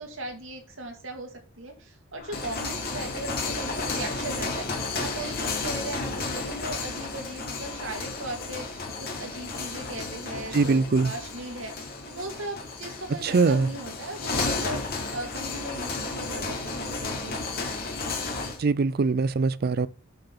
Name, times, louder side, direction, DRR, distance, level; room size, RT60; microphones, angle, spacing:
voice 1, 0.0-17.4, right 2 dB, 75° right, 2.2 m, -38 dB
sound 1, 2.2-18.6, left 3 dB, 50° left, 2.2 m, -33 dB
voice 2, 10.5-11.1 13.2-13.7 18.6-19.9, right 4 dB, 50° right, 0.4 m, -22 dB
6.7 x 5.8 x 5.8 m
head